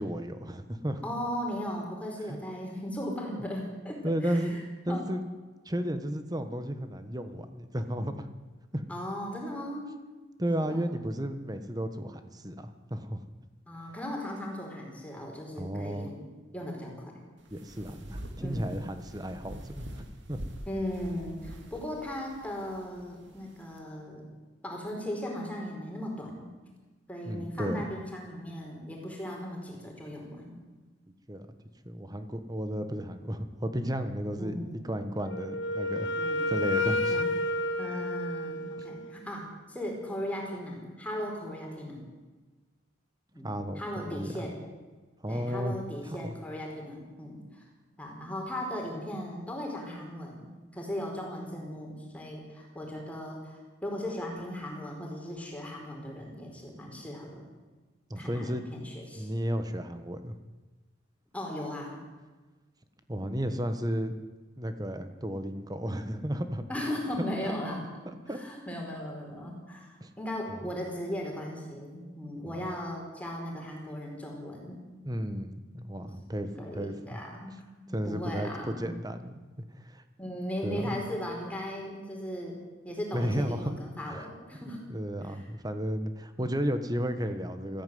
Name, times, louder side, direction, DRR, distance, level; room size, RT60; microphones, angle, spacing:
voice 1, 0.0-1.0 2.3-2.4 4.0-5.2 5.6-8.3 8.7-8.8 10.4-12.5 12.9-13.2 15.6-16.1 17.5-19.9 20.3-20.4 27.2-27.9 31.3-31.5 31.8-34.5 34.8-36.1 36.5-37.1 43.4-44.3 45.2-45.8 46.2-46.3 58.1-58.9 59.2-60.4 63.1-64.1 64.6-66.6 67.4-67.5 68.3-68.4 70.0-70.1 70.5-70.6 72.5-72.6 75.0-77.2 77.9-79.4 79.8-80.0 80.6-81.0 83.1-83.7 84.0-84.3 84.9-87.8, equal, 20° right, 9 dB, 1.4 m, -33 dB
voice 2, 1.0-4.6 4.9-5.0 8.9-9.9 10.6-11.0 13.7-16.2 16.5-17.2 18.4-18.8 20.7-24.3 24.6-26.5 27.1-30.5 34.4-34.7 36.1-36.5 37.1-37.3 37.8-42.0 43.3-44.6 45.3-47.6 48.0-57.4 58.2-59.3 61.3-62.0 66.7-67.9 68.3-74.8 76.5-77.6 77.9-79.0 80.2-84.8 85.2-85.5 86.4-86.5, left 1 dB, 5° left, 0 dB, 4.5 m, -37 dB
sound 1, 17.4-23.8, equal, 70° right, 2.8 m, -45 dB
Wind instrument woodwind instrument, 35.3-39.1, left 1 dB, 75° left, 1.4 m, -30 dB
19.0 x 15.0 x 9.5 m, 1.3 s
head